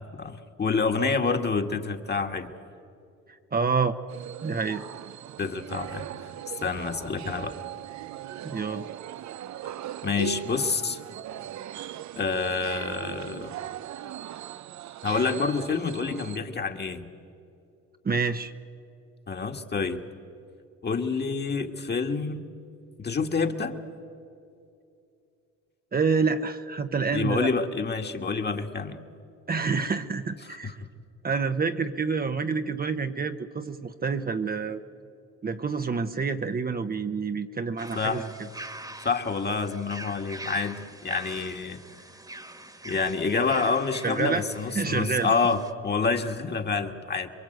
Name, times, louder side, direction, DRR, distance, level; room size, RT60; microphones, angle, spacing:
voice 1, 0.0-2.5 5.4-6.3 6.6-7.5 10.0-11.0 12.2-13.5 15.0-17.1 19.3-20.0 20.8-22.4 23.0-23.8 27.1-29.0 30.4-30.7 38.0-38.3 39.0-41.8 42.8-47.3, left 4 dB, 35° left, 5 dB, 1.8 m, -28 dB
voice 2, 3.5-4.0 4.4-4.8 8.4-8.9 18.0-18.5 25.9-27.5 29.5-30.8 31.2-34.8 35.4-38.2 44.0-44.4 44.7-45.3, right 5 dB, 30° right, 8 dB, 1.0 m, -27 dB
sound 1, 4.1-16.4, right 11 dB, 65° right, 0.7 m, -39 dB
sound 2, 37.8-45.7, right 2 dB, 10° right, 1.6 m, -43 dB
27.0 x 23.0 x 8.0 m, 2.6 s
cardioid pair, 90°, 30 cm